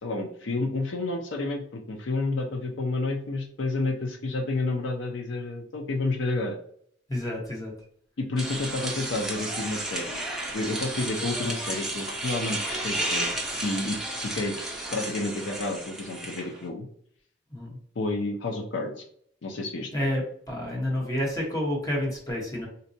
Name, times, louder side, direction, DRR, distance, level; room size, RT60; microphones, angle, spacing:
voice 1, 0.0-6.6 8.2-10.2 10.5-14.5 14.9-16.9 18.0-19.0 19.4-19.9, left 2 dB, 70° left, 2 dB, 0.5 m, -30 dB
voice 2, 7.1-7.7 17.5-17.8 19.9-22.7, left 1 dB, 20° left, -2 dB, 0.9 m, -29 dB
sound 1, 8.4-16.6, right 1 dB, ahead, 0.5 m, -32 dB
3.9 x 2.2 x 2.6 m, 0.63 s
head